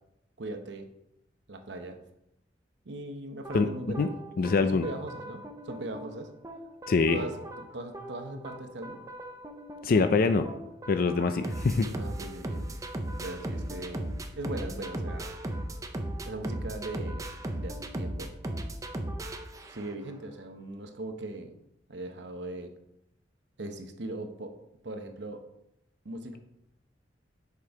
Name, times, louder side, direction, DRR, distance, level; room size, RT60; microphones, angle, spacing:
voice 1, 0.4-0.9 1.5-2.0 2.8-4.1 4.6-6.3 7.1-9.0 11.9-12.7 13.2-14.1 14.4-15.3 16.2-17.3 17.5-18.3 19.7-21.5 21.9-22.7 23.6-24.6 24.8-25.4 26.0-26.4, right 2 dB, 65° right, 6 dB, 0.9 m, -39 dB
sound 1, 3.4-20.1, right 1 dB, 20° right, 0.5 m, -38 dB
voice 2, 4.4-4.9 6.9-7.2 9.8-10.5 10.9-11.9, left 4 dB, 50° left, 9 dB, 0.4 m, -24 dB
6.6 x 5.2 x 4.8 m, 0.82 s
head